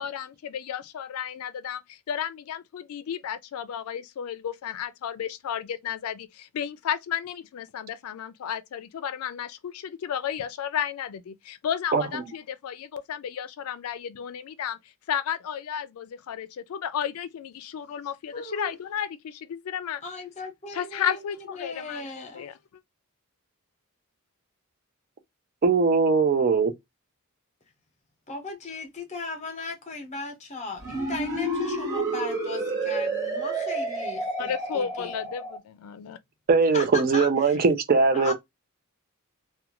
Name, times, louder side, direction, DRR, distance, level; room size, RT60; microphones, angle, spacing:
voice 1, 0.0-14.8 15.1-20.0 20.7-22.5 34.4-36.2, left 8 dB, 75° left, 0.4 m, -33 dB
voice 2, 18.3-18.8 20.0-22.4 28.3-35.1 36.7-37.6 38.1-38.3, left 3 dB, 30° left, 0.8 m, -37 dB
voice 3, 25.6-26.7 36.5-38.3, right 4 dB, 40° right, 0.5 m, -20 dB
sound 1, 30.8-35.6, right 2 dB, 15° right, 0.9 m, -30 dB
2.4 x 2.2 x 2.8 m
head